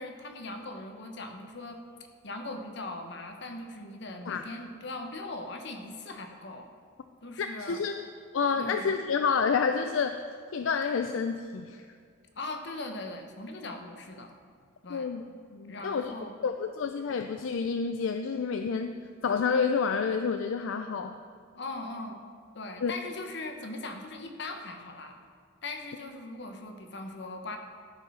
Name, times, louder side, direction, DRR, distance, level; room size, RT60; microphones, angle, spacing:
voice 1, 0.0-1.8 2.2-6.7 7.2-7.8 8.5-8.9 12.4-14.3 14.8-15.1 15.6-16.4 21.5-22.2 22.5-25.2 25.6-27.6, left 2 dB, 60° left, 5 dB, 1.1 m, -40 dB
voice 2, 7.4-8.0 8.3-10.2 10.5-11.8 14.9-15.2 15.5-16.2 16.4-19.0 19.2-21.2 22.8-22.9, left 5 dB, 75° left, 7 dB, 0.4 m, -29 dB
13.5 x 5.4 x 5.6 m, 2.1 s
head